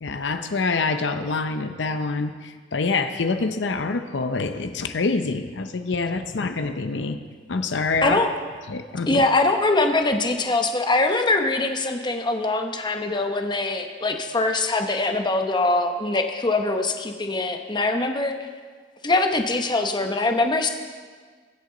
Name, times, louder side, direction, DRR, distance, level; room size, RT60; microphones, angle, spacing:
voice 1, 0.0-7.2 7.5-8.2 8.7-9.2, left 3 dB, 80° left, 8 dB, 0.6 m, -26 dB
voice 2, 9.1-18.4 19.0-20.7, left 2 dB, 25° left, 5 dB, 0.9 m, -23 dB
22.0 x 8.3 x 3.9 m, 1.6 s
head